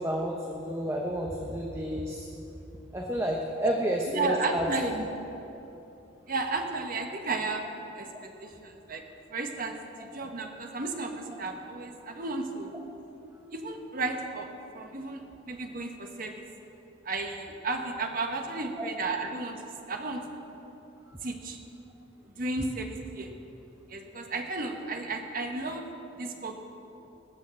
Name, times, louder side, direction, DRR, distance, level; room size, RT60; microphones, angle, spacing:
voice 1, 0.0-2.3 2.9-4.9 18.8-18.9, equal, 15° right, 0 dB, 0.9 m, -31 dB
voice 2, 4.1-5.0 6.3-7.7 7.9-8.1 8.4-9.0 9.3-12.7 13.5-14.5 14.7-16.4 17.0-19.6 19.9-20.2 21.2-21.6 22.2-23.3 23.9-25.9 26.2-26.5, right 3 dB, 45° right, 4 dB, 1.3 m, -33 dB
19.0 x 6.5 x 7.7 m, 3.0 s
head